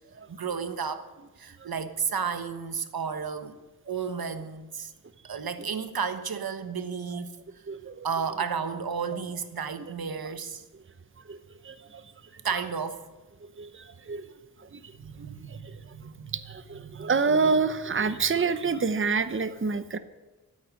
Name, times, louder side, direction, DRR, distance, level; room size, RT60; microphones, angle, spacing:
voice 1, 0.3-1.1 1.4-3.6 3.9-4.9 5.2-7.4 8.0-10.6 12.4-13.0 15.0-16.4 16.8-17.4, right 6 dB, 80° right, 1.3 m, -33 dB
voice 2, 7.7-8.1 9.1-9.2 11.3-11.4 11.6-12.0 13.4-14.2 14.7-14.9 15.5-15.8 16.3-20.0, right 4 dB, 35° right, 0.9 m, -28 dB
13.5 x 8.9 x 9.5 m
cardioid pair, 60°, 36 cm